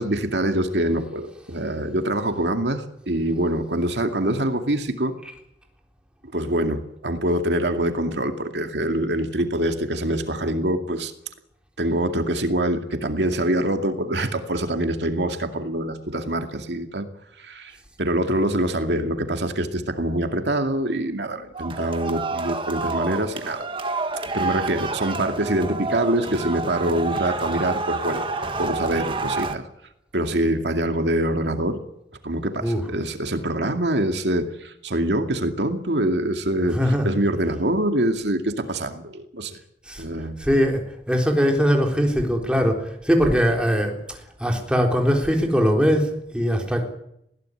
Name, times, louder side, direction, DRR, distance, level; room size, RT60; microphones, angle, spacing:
voice 1, 0.0-5.1 6.3-11.1 11.8-17.1 17.4-23.7 24.3-29.7 30.1-31.8 32.2-39.6 40.0-40.4, right 1 dB, 80° right, 6 dB, 2.3 m, -25 dB
sound 1, 21.5-29.6, right 3 dB, 30° right, 1.9 m, -28 dB
voice 2, 36.7-37.1 39.9-40.0 40.4-40.8 41.1-46.8, equal, 5° right, 2 dB, 3.8 m, -21 dB
20.5 x 16.5 x 9.9 m, 0.78 s
head